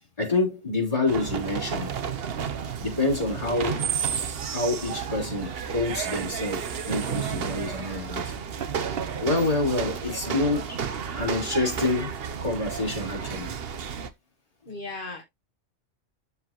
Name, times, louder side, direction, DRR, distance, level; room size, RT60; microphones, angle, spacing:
voice 1, 0.2-1.9 2.8-3.8 4.5-8.2 9.2-10.8 11.1-12.1 12.4-13.5, left 2 dB, 30° left, 3.8 m, -27 dB
sound 1, 1.1-14.1, right 7 dB, 55° right, 1.0 m, -32 dB
voice 2, 3.4-4.0 9.9-10.3 14.7-15.2, left 3 dB, 45° left, 1.5 m, -39 dB
12.5 x 4.3 x 3.0 m
omnidirectional pair, 1.2 m